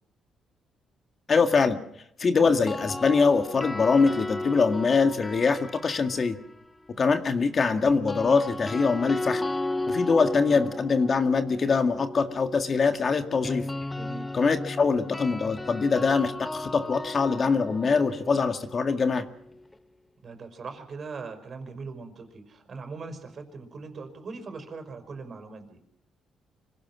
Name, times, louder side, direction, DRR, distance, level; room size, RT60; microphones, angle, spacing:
voice 1, 1.3-1.8 2.2-6.4 7.0-9.4 9.9-13.7 14.3-19.3, left 4 dB, 40° left, 7 dB, 2.0 m, -23 dB
sound 1, 2.5-6.6 7.9-19.7, left 2 dB, 15° left, 0.8 m, -35 dB
voice 2, 10.4-10.7 13.9-14.3 20.2-25.8, right 4 dB, 45° right, 6 dB, 5.3 m, -40 dB
25.5 x 17.0 x 6.3 m, 0.74 s
cardioid pair, 90°, 0 cm